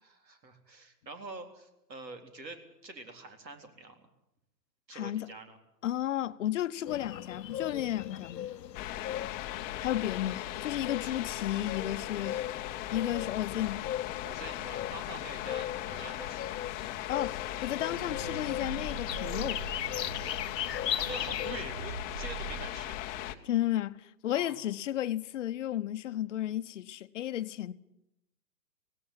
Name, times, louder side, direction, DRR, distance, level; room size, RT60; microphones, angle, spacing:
voice 1, 0.0-4.1 4.9-5.6 9.8-9.9 11.0-11.2 12.1-12.4 14.2-16.6 21.0-23.0 24.3-24.6, right 2 dB, 80° right, 4.0 m, -45 dB
voice 2, 4.9-5.3 5.8-8.5 9.8-12.4 12.9-13.8 17.1-19.6 23.4-27.7, left 12 dB, 45° left, 0.9 m, -33 dB
sound 1, 6.9-21.6, left 11 dB, 75° left, 0.7 m, -39 dB
sound 2, 8.7-23.3, left 14 dB, 20° left, 0.8 m, -38 dB
sound 3, 17.7-22.7, right 6 dB, 25° right, 1.1 m, -43 dB
17.5 x 17.5 x 9.9 m
hypercardioid pair, 125°, 50 cm